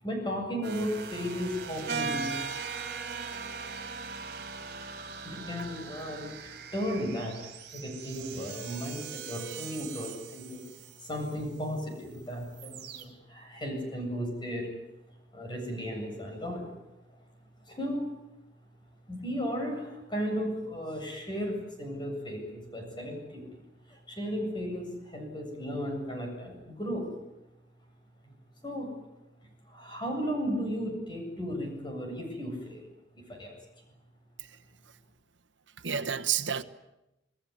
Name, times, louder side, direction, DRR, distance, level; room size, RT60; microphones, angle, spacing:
voice 1, 0.0-2.4 5.2-10.6 11.0-14.7 15.3-16.7 17.1-17.2 17.7-18.1 19.1-23.6 23.8-27.1 28.2-28.3 28.6-28.9 29.4-32.9 33.1-33.5, equal, 25° left, 8.0 m, -35 dB
sound 1, 0.6-11.4 11.8-12.2 12.5-13.0, right 5 dB, 55° right, 3.9 m, -40 dB
voice 2, 35.8-36.6, right 8 dB, 80° right, 1.2 m, -30 dB
28.0 x 19.0 x 9.8 m
head